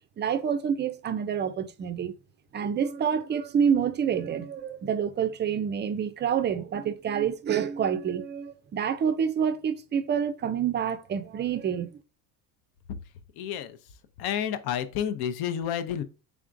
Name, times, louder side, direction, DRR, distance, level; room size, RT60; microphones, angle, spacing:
voice 1, 0.2-2.1 2.5-11.9, right 8 dB, 25° right, 0.4 m, -27 dB
voice 2, 13.4-13.8 14.2-16.0, left 9 dB, 60° left, 0.6 m, -30 dB
3.6 x 3.5 x 2.5 m
supercardioid pair, 90°, 42 cm